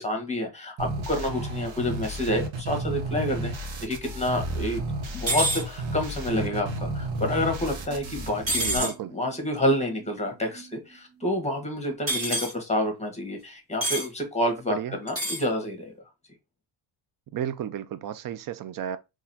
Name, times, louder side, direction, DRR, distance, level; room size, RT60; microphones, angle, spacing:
voice 1, 0.0-3.5 3.8-4.8 5.1-15.9, left 1 dB, 15° left, 1.4 m, -28 dB
sound 1, 0.8-8.8, right 2 dB, 70° right, 1.2 m, -32 dB
sound 2, 5.3-5.6 8.5-8.9 12.1-12.5 13.8-14.1 15.1-15.4, right 1 dB, 25° right, 1.9 m, -27 dB
voice 2, 8.5-9.1 14.7-14.9 17.3-19.0, right 10 dB, 45° right, 0.5 m, -33 dB
sound 3, 10.2-12.1, right 6 dB, 85° right, 1.2 m, -51 dB
3.9 x 3.1 x 2.8 m
cardioid pair, 110°, 49 cm